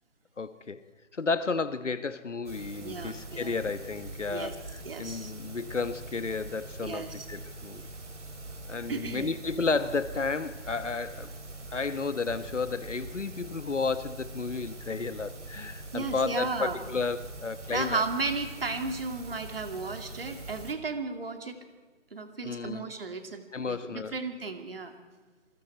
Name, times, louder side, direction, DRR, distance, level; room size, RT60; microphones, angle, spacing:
voice 1, 0.4-0.8 1.1-7.9 8.7-11.3 11.7-18.0 22.4-22.9 23.5-24.2, left 4 dB, 65° left, 14 dB, 1.2 m, -32 dB
sound 1, 2.5-20.7, right 2 dB, 65° right, 3.4 m, -43 dB
voice 2, 2.8-3.5 4.3-4.6 4.8-5.3 6.8-7.3 8.9-9.3 15.9-16.8 17.7-21.6 22.1-24.9, right 4 dB, 45° right, 6 dB, 2.4 m, -34 dB
27.5 x 21.5 x 4.5 m, 1.4 s
figure-of-eight pair, 160°, 39 cm